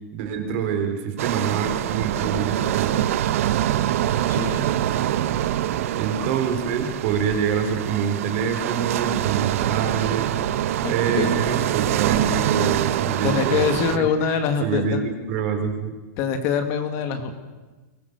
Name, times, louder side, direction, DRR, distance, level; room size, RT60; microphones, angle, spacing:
voice 1, 0.1-2.9 5.9-10.3 10.9-13.6 13.9-15.0 15.3-15.9, right 7 dB, 40° right, 6 dB, 3.5 m, -26 dB
sound 1, 1.2-14.0, right 12 dB, 55° right, 1.0 m, -24 dB
voice 2, 4.3-4.7 10.8-11.6 13.0-15.0 16.2-17.3, left 7 dB, 30° left, 7 dB, 1.8 m, -25 dB
22.5 x 19.5 x 6.6 m, 1.2 s
supercardioid pair, 170°, 9 cm